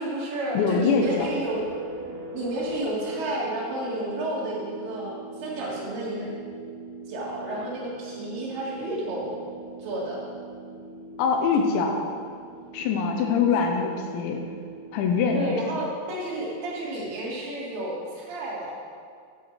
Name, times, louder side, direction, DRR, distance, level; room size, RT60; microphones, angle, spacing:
voice 1, 0.0-1.6 2.3-6.3 7.1-9.3 9.8-10.2 15.3-18.8, right 1 dB, 65° right, -5 dB, 3.4 m, -31 dB
voice 2, 0.5-1.3 11.2-12.1 12.7-14.4 14.9-15.6, left 5 dB, 80° left, 3 dB, 2.9 m, -23 dB
sound 1, 0.8-17.1, right 3 dB, 85° right, 3.4 m, -41 dB
13.5 x 9.5 x 3.2 m, 2.1 s
omnidirectional pair, 5.5 m